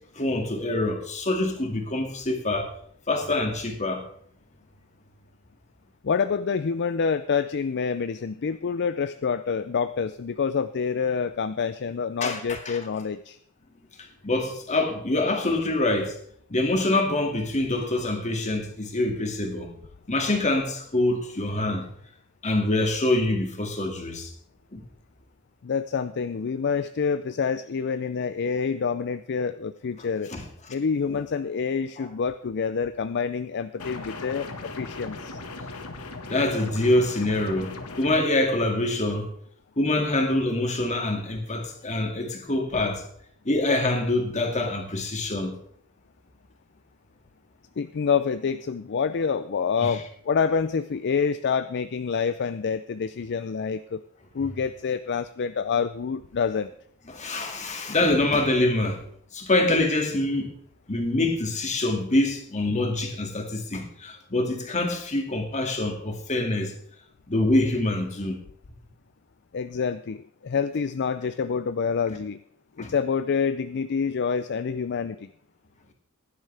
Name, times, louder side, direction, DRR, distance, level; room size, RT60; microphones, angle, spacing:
voice 1, 0.2-2.7 3.1-4.1 12.2-12.8 14.0-16.2 16.5-19.7 20.1-21.9 22.4-24.3 24.7-24.8 30.3-30.4 31.1-31.2 32.0-32.1 36.3-39.3 39.8-43.0 43.4-45.6 49.8-49.9 57.1-59.0 59.3-60.5 60.9-66.7 67.3-68.4 72.8-72.9, left 2 dB, 35° left, 2.2 m, -25 dB
voice 2, 6.0-13.4 25.6-30.3 30.7-35.4 47.8-54.0 54.3-56.7 69.5-72.4 72.8-75.3, left 6 dB, 50° left, 0.4 m, -27 dB
sound 1, 33.8-38.2, left 3 dB, 85° left, 1.7 m, -38 dB
16.0 x 11.0 x 3.4 m
head